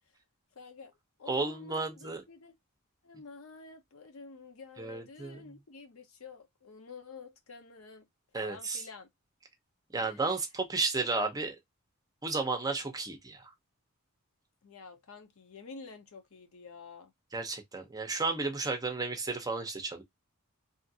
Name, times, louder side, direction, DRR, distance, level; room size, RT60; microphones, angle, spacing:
voice 1, 0.6-0.9 1.2-2.6 3.0-8.1 8.3-9.1 10.0-10.3 14.6-17.1, left 4 dB, 70° left, 0.7 m, -49 dB
voice 2, 1.3-2.2 4.8-5.5 8.3-8.8 9.9-11.6 12.2-13.5 17.3-20.0, right 3 dB, 15° right, 0.7 m, -33 dB
2.7 x 2.5 x 2.7 m
head